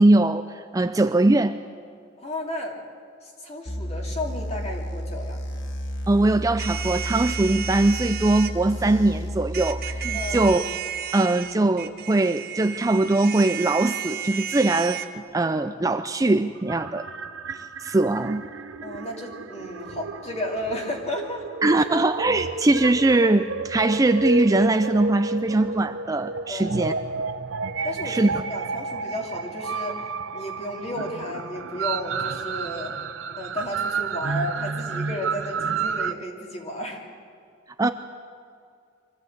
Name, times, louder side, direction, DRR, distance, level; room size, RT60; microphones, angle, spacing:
voice 1, 0.0-1.6 6.1-10.6 11.1-17.1 17.8-18.5 21.6-26.9 28.0-28.3 37.8-37.9, right 2 dB, 20° right, 8 dB, 0.4 m, -21 dB
voice 2, 2.2-2.8 3.2-5.4 10.1-10.6 18.8-21.5 26.5-26.8 27.8-30.0 30.3-32.9 33.4-37.0, left 1 dB, 35° left, 0 dB, 2.9 m, -33 dB
sound 1, 3.7-10.5, equal, 85° left, 2.2 m, -32 dB
sound 2, 6.6-8.5 9.5-15.1, right 9 dB, 50° right, 1.0 m, -33 dB
sound 3, 16.6-36.1, right 4 dB, 90° right, 0.7 m, -31 dB
24.0 x 14.5 x 8.0 m, 2.3 s
head